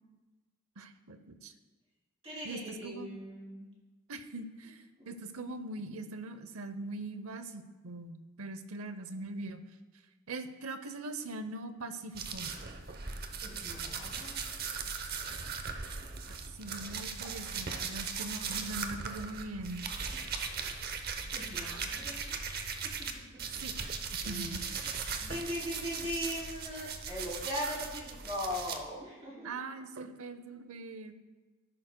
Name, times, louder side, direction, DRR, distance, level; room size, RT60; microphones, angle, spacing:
voice 1, 0.8-1.5 2.4-3.1 4.1-9.6 10.3-12.5 16.3-19.8 21.6-22.0 23.6-23.8 24.1-24.6 29.4-31.2, right 2 dB, 80° right, 10 dB, 0.7 m, -42 dB
voice 2, 2.2-3.7 5.0-5.1 13.4-14.4 21.3-22.4 22.8-22.9 24.1-24.7 25.2-29.5, equal, 25° right, -6 dB, 3.1 m, -39 dB
sound 1, 12.1-23.1 23.4-28.8, right 5 dB, 45° right, 0.8 m, -38 dB
13.5 x 11.0 x 2.2 m, 1.3 s
head